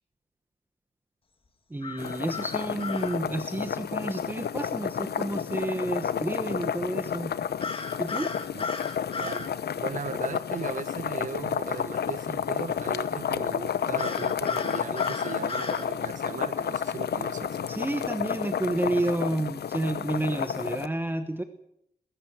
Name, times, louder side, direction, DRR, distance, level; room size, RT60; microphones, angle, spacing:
voice 1, 1.7-7.3 8.0-8.3 17.7-21.4, right 1 dB, 10° right, 8 dB, 1.2 m, -30 dB
sound 1, 1.8-3.2 7.6-9.5 14.0-15.9, left 4 dB, 30° left, 2.1 m, -36 dB
sound 2, 2.0-20.9, left 8 dB, 70° left, 0.9 m, -31 dB
voice 2, 9.8-17.6, right 6 dB, 50° right, 13 dB, 0.8 m, -37 dB
21.0 x 17.5 x 7.5 m, 0.76 s
wide cardioid pair, 160°, 17 cm